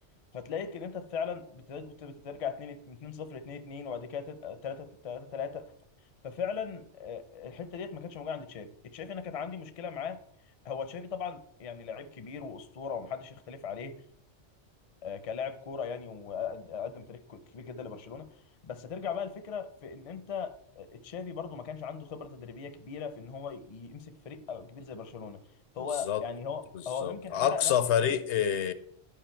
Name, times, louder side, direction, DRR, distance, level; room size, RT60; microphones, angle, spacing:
voice 1, 0.3-5.7 6.2-10.2 10.6-14.0 15.0-18.3 18.6-25.4 25.7-27.7 28.0-28.2, left 6 dB, 40° left, 0.5 m, -38 dB
voice 2, 26.7-28.7, left 9 dB, 75° left, 0.8 m, -27 dB
11.0 x 5.1 x 4.4 m
omnidirectional pair, 1.2 m